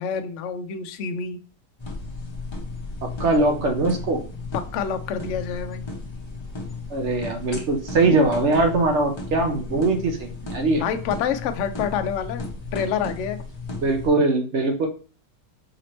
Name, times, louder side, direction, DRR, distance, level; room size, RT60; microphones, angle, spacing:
voice 1, 0.0-1.4 4.5-5.8 9.4-9.8 10.7-12.4 12.7-13.4, left 7 dB, 75° left, 8 dB, 0.6 m, -28 dB
sound 1, 1.8-14.1, left 3 dB, 25° left, 0.6 m, -35 dB
voice 2, 3.0-4.2 6.9-10.8 13.8-14.9, right 2 dB, 60° right, 5 dB, 0.8 m, -21 dB
4.9 x 3.0 x 3.0 m, 0.38 s
omnidirectional pair, 1.9 m